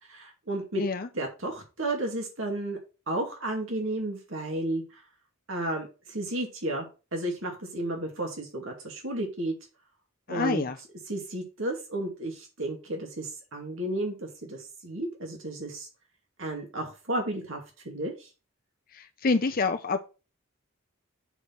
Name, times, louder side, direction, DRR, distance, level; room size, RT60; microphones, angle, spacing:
voice 1, 0.0-0.8 1.1-2.8 3.1-5.0 5.5-6.9 7.1-9.5 10.3-10.7 11.1-15.9 16.4-18.3, right 1 dB, 65° right, 1 dB, 2.3 m, -33 dB
voice 2, 0.8-1.1 10.3-10.8 18.9-20.0, left 4 dB, 40° left, 7 dB, 0.6 m, -27 dB
6.9 x 4.5 x 5.9 m, 0.30 s
head